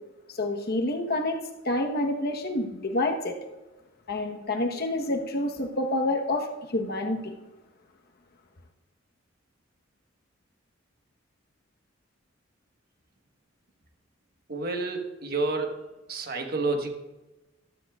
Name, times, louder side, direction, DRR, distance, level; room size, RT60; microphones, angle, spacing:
voice 1, 0.3-1.4 1.6-3.4 4.1-7.3, left 1 dB, 50° left, 3 dB, 1.1 m, -28 dB
voice 2, 14.5-15.8 16.1-16.9, right 3 dB, 50° right, 3 dB, 1.3 m, -29 dB
14.5 x 12.5 x 2.4 m, 1.1 s
head